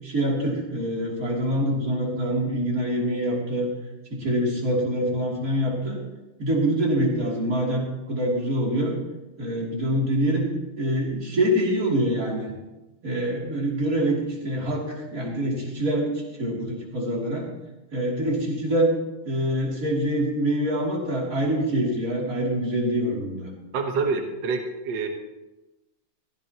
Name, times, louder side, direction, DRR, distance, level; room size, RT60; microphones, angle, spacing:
voice 1, 0.0-3.7 4.1-6.0 6.4-9.0 9.4-10.5 10.8-12.5 13.0-16.1 16.4-17.5 17.9-18.9 19.3-23.5, right 1 dB, 40° right, -3 dB, 3.4 m, -25 dB
voice 2, 23.7-25.1, right 4 dB, 60° right, 3 dB, 1.8 m, -27 dB
16.0 x 15.5 x 3.0 m, 1.0 s
omnidirectional pair, 2.2 m